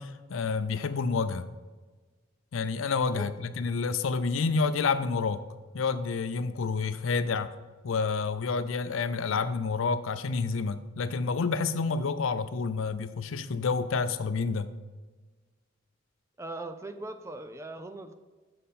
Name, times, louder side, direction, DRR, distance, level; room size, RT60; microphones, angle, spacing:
voice 1, 0.0-1.5 2.5-5.4 5.7-7.5 7.8-14.7, left 4 dB, 80° left, 12 dB, 0.5 m, -29 dB
voice 2, 16.4-18.2, right 2 dB, 15° right, 9 dB, 0.5 m, -40 dB
7.5 x 6.6 x 4.2 m, 1.3 s
head